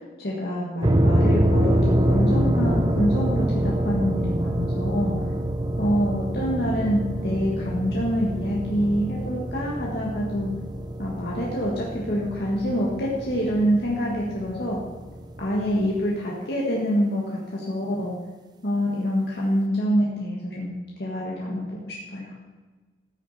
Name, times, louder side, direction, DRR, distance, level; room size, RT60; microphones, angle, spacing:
voice 1, 0.2-5.1 5.8-10.5 11.0-14.8 15.4-18.1 18.6-20.7 21.0-22.3, equal, 65° left, -5 dB, 1.8 m, -26 dB
sound 1, 0.8-16.0, right 1 dB, 25° right, 0.6 m, -25 dB
14.5 x 6.2 x 4.2 m, 1.3 s
head